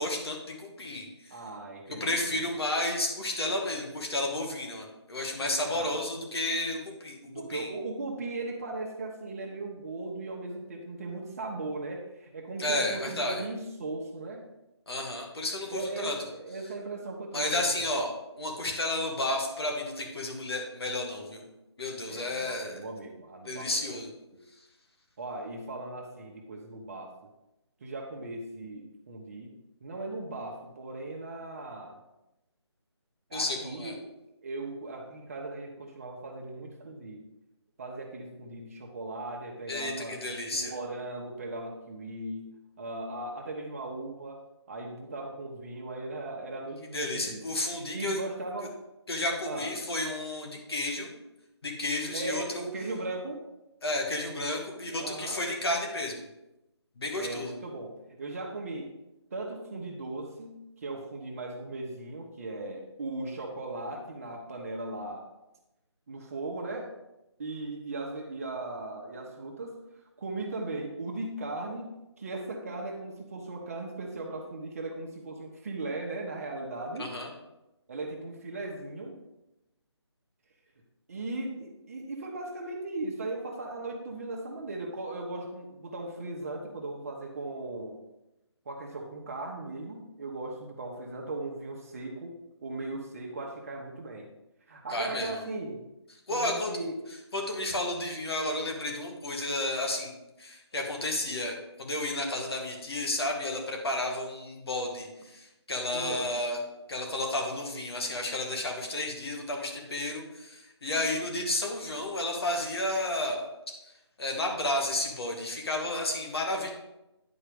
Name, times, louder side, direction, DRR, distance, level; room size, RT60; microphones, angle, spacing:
voice 1, 0.0-1.3 1.9-7.2 7.5-7.7 12.6-13.4 14.9-16.3 17.3-21.4 21.8-22.8 23.4-24.1 33.3-33.9 39.7-40.7 46.9-48.2 49.1-51.1 51.6-52.6 53.8-56.2 57.0-57.5 77.0-77.3 94.9-95.4 96.3-96.7 97.3-106.6 106.9-113.4 114.2-116.7, left 1 dB, 60° left, 1 dB, 2.1 m, -32 dB
voice 2, 1.3-2.6 5.7-6.0 7.3-14.4 15.7-17.9 22.1-24.0 25.2-27.1 27.8-29.5 29.8-32.0 33.3-34.1 34.4-37.2 37.8-40.2 40.5-42.5 42.8-44.4 44.7-47.4 47.9-48.8 49.4-49.7 52.0-53.4 55.0-55.4 57.2-58.9 59.3-65.2 66.1-66.9 67.4-69.8 70.2-77.1 77.9-79.2 81.1-88.0 88.6-92.3 92.6-94.3 94.7-95.8 96.3-97.0 105.9-106.3, right 2 dB, 30° right, 1 dB, 1.0 m, -38 dB
9.8 x 4.4 x 5.2 m, 0.94 s
figure-of-eight pair, 165°, 15 cm